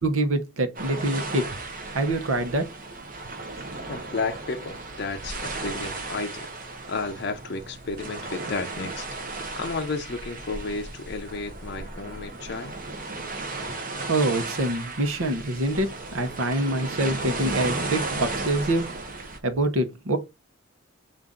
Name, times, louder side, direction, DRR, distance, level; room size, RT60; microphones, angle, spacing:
voice 1, 0.0-1.5 1.9-2.7 14.1-18.8 19.4-20.2, right 1 dB, 80° right, 0.9 m, -25 dB
sound 1, 0.7-19.4, right 3 dB, 40° right, 0.8 m, -35 dB
voice 2, 3.9-6.5 6.9-9.1 9.6-12.8, left 3 dB, 50° left, 0.5 m, -32 dB
5.6 x 2.5 x 3.7 m
head